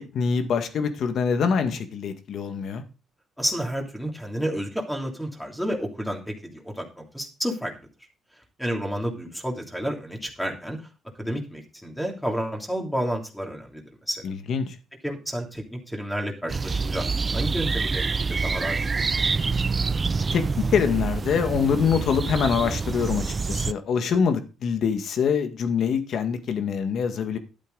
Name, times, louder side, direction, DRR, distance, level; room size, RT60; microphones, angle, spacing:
voice 1, 0.0-2.8 14.2-14.8 20.3-27.4, left 6 dB, 60° left, 8 dB, 1.8 m, -25 dB
voice 2, 3.4-7.7 8.6-10.8 11.2-14.2 15.0-17.1 17.3-19.0, equal, 5° left, 2 dB, 3.1 m, -30 dB
sound 1, 16.5-23.7, right 4 dB, 30° right, 0.4 m, -26 dB
12.0 x 8.2 x 4.0 m, 0.32 s
cardioid pair, 105°, 0 cm